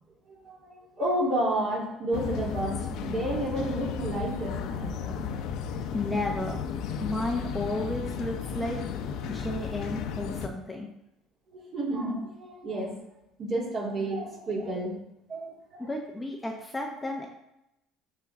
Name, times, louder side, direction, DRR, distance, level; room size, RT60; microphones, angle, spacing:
voice 1, 0.3-5.2 11.5-13.0 13.4-15.0 15.3-15.9, right 1 dB, 35° right, -3 dB, 3.1 m, -31 dB
sound 1, 2.1-10.5, left 7 dB, 60° left, 0.8 m, -34 dB
voice 2, 5.9-6.6 7.0-8.8 9.3-10.9 15.9-17.3, left 2 dB, 10° left, 0 dB, 0.8 m, -32 dB
13.0 x 4.5 x 3.7 m, 0.84 s
cardioid pair, 145°, 0 cm